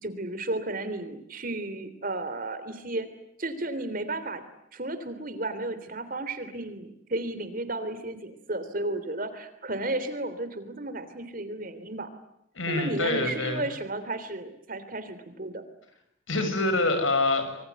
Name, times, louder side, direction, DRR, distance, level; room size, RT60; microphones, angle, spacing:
voice 1, 0.0-3.1 3.4-4.4 4.7-12.1 12.7-15.6, right 2 dB, 45° right, 11 dB, 3.4 m, -33 dB
voice 2, 12.5-13.6 16.3-17.6, left 2 dB, 85° left, 8 dB, 6.6 m, -26 dB
26.5 x 23.5 x 9.5 m, 0.79 s
head